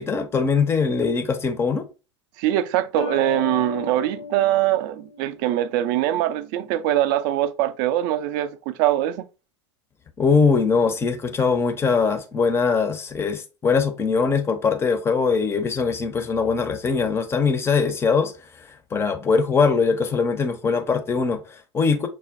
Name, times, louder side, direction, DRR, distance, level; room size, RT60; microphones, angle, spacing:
voice 1, 0.0-1.9 10.2-22.1, left 5 dB, 15° left, 0.5 m, -22 dB
voice 2, 2.4-9.2, right 13 dB, 45° right, 0.4 m, -23 dB
sound 1, 3.0-5.6, left 6 dB, 65° left, 0.6 m, -35 dB
5.9 x 2.2 x 2.3 m
figure-of-eight pair, 85°, 15 cm